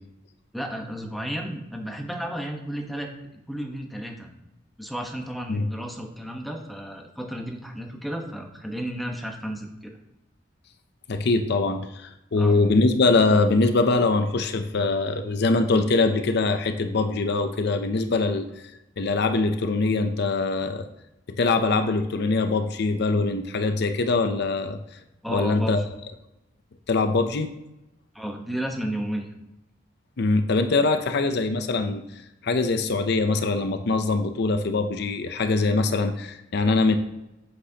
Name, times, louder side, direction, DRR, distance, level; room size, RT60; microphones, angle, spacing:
voice 1, 0.5-4.3 4.8-10.0 12.4-12.6 25.2-25.7 28.1-29.3, right 1 dB, ahead, 1 dB, 1.1 m, -33 dB
voice 2, 11.1-18.5 19.0-20.9 21.4-24.8 25.3-25.8 26.9-27.5 30.2-32.0 32.4-37.0, left 3 dB, 60° left, 8 dB, 0.6 m, -23 dB
8.3 x 7.8 x 2.8 m, 0.93 s
head